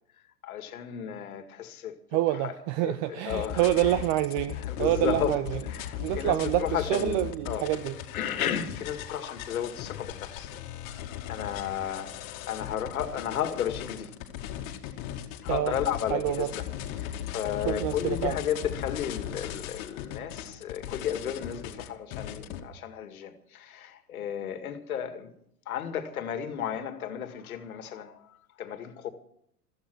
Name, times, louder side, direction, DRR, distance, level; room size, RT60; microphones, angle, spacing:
voice 1, 0.4-2.0 2.4-2.5 2.8-3.9 4.6-5.3 5.7-7.7 8.1-10.5 11.3-14.1 15.4-16.6 17.0-25.3 25.7-28.3 28.6-29.1, left 9 dB, 60° left, 2.2 m, -33 dB
voice 2, 2.1-5.6 6.0-8.0 15.5-15.7 16.1-16.5 17.6-18.3, right 14 dB, 30° right, 0.7 m, -27 dB
sound 1, 3.3-22.6, left 11 dB, 40° left, 2.3 m, -38 dB
15.5 x 14.5 x 6.2 m
figure-of-eight pair, 95°, 48 cm